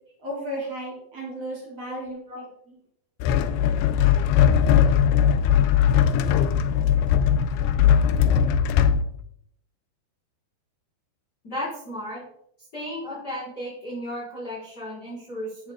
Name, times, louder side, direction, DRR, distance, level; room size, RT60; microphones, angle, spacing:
voice 1, 0.2-2.8, equal, 40° right, -5 dB, 4.1 m, -34 dB
voice 2, 1.7-2.0 2.3-2.4 11.4-12.2 12.7-15.7, equal, 25° left, -7 dB, 4.0 m, -35 dB
sound 1, 3.2-9.0, left 8 dB, 85° left, 2.6 m, -19 dB
11.5 x 7.6 x 3.5 m, 0.70 s
omnidirectional pair, 4.7 m